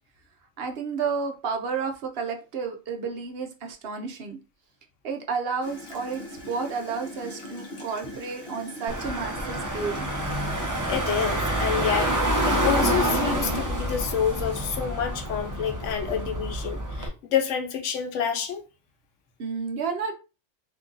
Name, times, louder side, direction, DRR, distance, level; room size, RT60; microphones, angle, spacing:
voice 1, 0.6-4.4 5.0-10.1 19.4-20.1, right 5 dB, 60° right, 0.8 m, -31 dB
Gurgling / Toilet flush, 5.6-12.7, left 1 dB, 55° left, 1.1 m, -42 dB
Car / Engine, 8.9-17.1, right 1 dB, 20° right, 0.5 m, -27 dB
voice 2, 10.5-12.1 12.4-18.6, left 7 dB, 90° left, 1.0 m, -28 dB
2.9 x 2.5 x 3.7 m
omnidirectional pair, 1.2 m